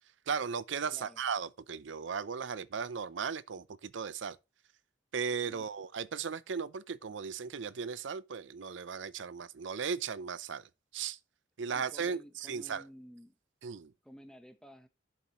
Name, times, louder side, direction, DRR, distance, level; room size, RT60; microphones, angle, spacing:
voice 1, 0.3-4.4 5.1-10.6 10.9-11.2 11.6-12.8 13.6-13.9, right 6 dB, 80° right, 0.6 m, -36 dB
voice 2, 0.9-1.2 11.7-13.4 14.0-14.9, equal, 5° left, 1.0 m, -53 dB
11.0 x 7.4 x 3.0 m
head